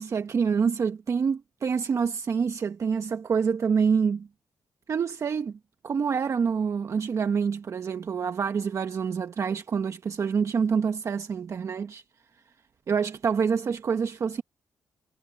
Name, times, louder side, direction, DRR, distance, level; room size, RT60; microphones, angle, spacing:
voice 1, 0.0-4.3 4.9-5.6 5.8-12.0 12.9-14.4, right 6 dB, 55° right, 1.2 m, -26 dB
cardioid pair, 75°, 6 cm